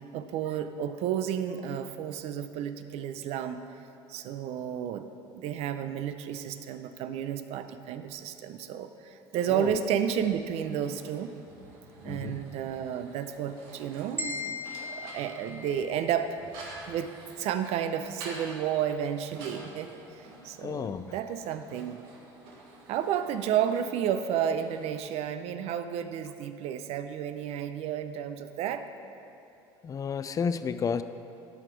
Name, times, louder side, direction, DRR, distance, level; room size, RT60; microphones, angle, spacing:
voice 1, 0.1-3.6 4.1-5.1 5.3-11.3 12.0-16.4 16.9-17.1 17.4-19.9 20.2-22.0 22.9-28.9, right 9 dB, 65° right, 10 dB, 0.6 m, -32 dB
sound 1, 9.3-24.9, right 2 dB, 85° right, 1.5 m, -49 dB
voice 2, 12.1-12.4 20.6-21.1 29.8-31.0, left 6 dB, 30° left, 12 dB, 0.4 m, -31 dB
sound 2, 14.2-16.4, left 3 dB, 15° right, 1.3 m, -38 dB
12.5 x 5.0 x 4.6 m, 2.7 s
supercardioid pair, 90°, 11 cm